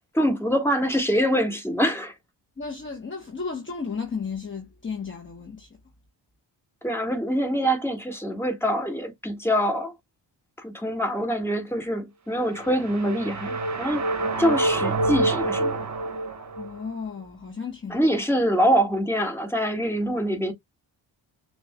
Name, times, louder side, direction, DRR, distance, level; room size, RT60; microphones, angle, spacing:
voice 1, 0.1-2.1 6.8-9.9 10.6-14.0 14.4-15.8 17.9-20.5, equal, 5° left, 1.8 m, -24 dB
voice 2, 2.6-5.7 14.3-14.6 16.6-18.0, left 5 dB, 25° left, 1.1 m, -34 dB
sound 1, 12.5-16.8, right 2 dB, 35° right, 1.3 m, -27 dB
6.8 x 2.6 x 2.2 m
cardioid pair, 75°, 47 cm